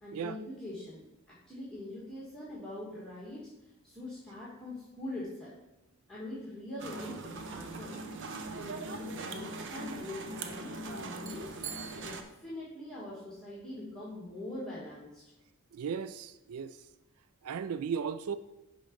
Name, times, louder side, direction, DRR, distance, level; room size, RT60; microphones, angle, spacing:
voice 1, 0.0-5.6 6.1-8.0 8.5-11.5 12.0-15.2, left 1 dB, 5° left, 1.6 m, -43 dB
sound 1, 6.8-12.2, right 3 dB, 60° right, 0.8 m, -41 dB
voice 2, 15.7-16.8 17.4-18.4, right 6 dB, 90° right, 0.4 m, -36 dB
11.0 x 3.9 x 5.1 m
head